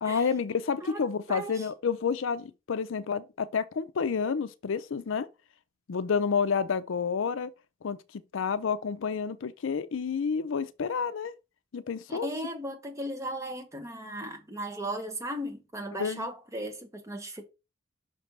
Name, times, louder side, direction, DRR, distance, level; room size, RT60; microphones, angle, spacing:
voice 1, 0.0-5.3 5.9-7.5 7.8-8.0 8.3-11.3 11.7-12.3 16.0-16.3, left 6 dB, 65° left, 0.5 m, -29 dB
voice 2, 0.8-1.7 12.1-17.5, right 1 dB, 15° right, 1.1 m, -37 dB
5.8 x 3.3 x 5.2 m
head